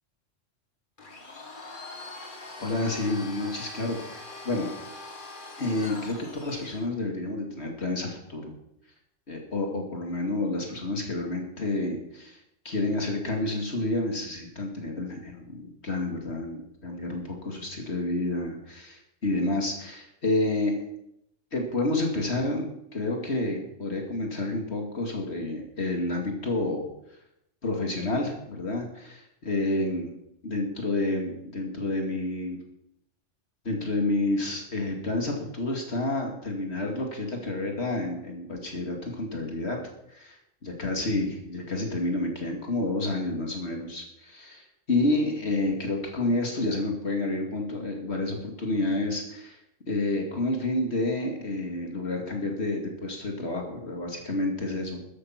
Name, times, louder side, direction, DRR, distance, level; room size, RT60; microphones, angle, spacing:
Domestic sounds home sounds, 1.0-6.9, left 2 dB, 45° left, 2.0 m, -42 dB
voice 1, 2.6-4.7 5.6-6.2 6.4-8.5 9.3-12.4 12.6-20.8 21.5-26.8 27.6-30.1 30.4-32.6 33.6-39.8 40.1-40.4 40.6-49.6 49.9-55.0, left 2 dB, 60° left, 1 dB, 2.5 m, -29 dB
13.5 x 11.5 x 5.8 m, 0.79 s
omnidirectional pair, 1.3 m